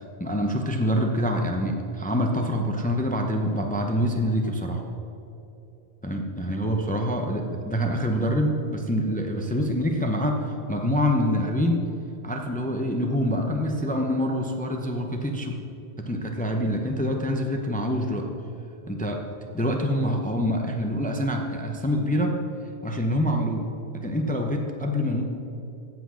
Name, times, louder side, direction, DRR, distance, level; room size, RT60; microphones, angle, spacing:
voice 1, 0.2-4.8 6.0-11.9 12.2-15.6 16.0-18.3 18.9-19.2 19.5-22.4 22.8-23.7 23.9-25.2, equal, 10° left, 3 dB, 0.7 m, -26 dB
16.0 x 6.0 x 6.3 m, 2.9 s
omnidirectional pair, 1.1 m